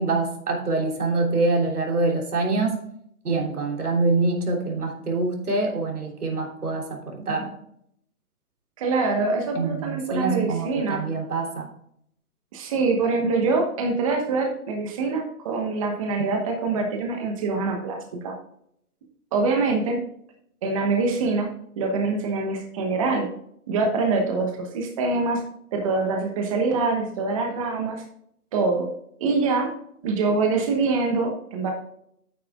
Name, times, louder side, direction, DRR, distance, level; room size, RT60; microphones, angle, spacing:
voice 1, 0.0-2.8 3.2-7.5 9.5-11.7, right 3 dB, 90° right, 1 dB, 3.4 m, -25 dB
voice 2, 8.8-11.0 12.5-18.3 19.3-20.0 20.6-21.5 21.8-23.3 23.7-25.4 25.7-28.0 28.5-28.9 29.2-29.7 30.0-31.7, right 3 dB, 25° right, 2 dB, 1.1 m, -24 dB
9.9 x 9.1 x 2.4 m, 0.70 s
hypercardioid pair, 160°, 44 cm